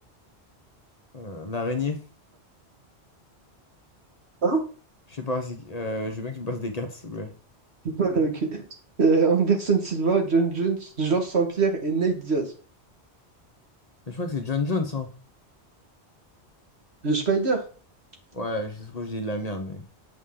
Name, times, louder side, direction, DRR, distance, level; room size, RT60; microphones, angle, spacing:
voice 1, 1.1-2.0 5.1-7.3 14.1-15.1 18.3-19.8, left 3 dB, 40° left, 5 dB, 1.0 m, -30 dB
voice 2, 7.8-8.6 9.0-12.5 17.0-17.6, right 4 dB, 70° right, 3 dB, 1.9 m, -23 dB
8.3 x 5.6 x 3.8 m, 0.38 s
omnidirectional pair, 1.1 m